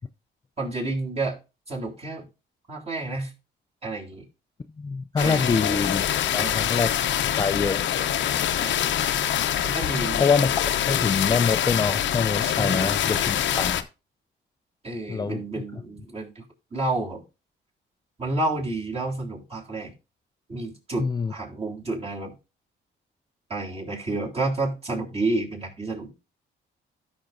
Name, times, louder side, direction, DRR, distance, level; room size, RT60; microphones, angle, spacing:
voice 1, 0.6-1.4 1.7-2.3 2.7-3.3 3.8-4.2 5.2-5.7 6.4-6.7 8.5-8.9 9.6-10.2 12.4-13.6 14.8-16.4 16.7-17.2 18.2-19.9 20.5-22.3 23.5-26.1, right 2 dB, 30° right, 3.4 m, -30 dB
voice 2, 4.8-6.0 6.3-7.9 10.2-10.5 10.9-13.9 15.1-15.4 21.0-21.3, left 5 dB, 20° left, 0.4 m, -25 dB
sound 1, 5.2-13.8, left 10 dB, 70° left, 0.7 m, -25 dB
13.0 x 5.9 x 2.6 m
cardioid pair, 90°, 20 cm